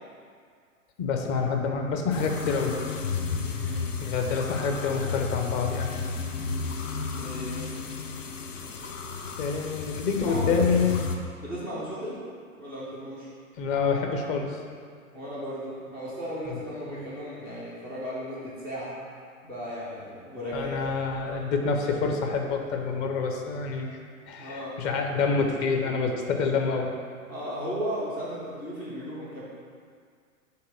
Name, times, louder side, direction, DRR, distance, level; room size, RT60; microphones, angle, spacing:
voice 1, 1.0-2.8 4.0-6.0 9.4-10.9 13.6-14.6 16.5-16.6 16.9-17.0 20.5-24.0 24.3-26.9, left 5 dB, 30° left, 3 dB, 0.7 m, -27 dB
sound 1, 2.1-11.2, left 5 dB, 65° left, 0.8 m, -32 dB
voice 2, 3.4-3.9 7.0-7.8 10.3-10.7 11.4-12.2 12.5-13.3 15.1-19.0 19.4-20.8 21.2-21.4 24.4-24.8 27.3-29.4, equal, 5° left, -8 dB, 0.3 m, -35 dB
5.7 x 4.0 x 6.1 m, 2.1 s
figure-of-eight pair, 100°, 41 cm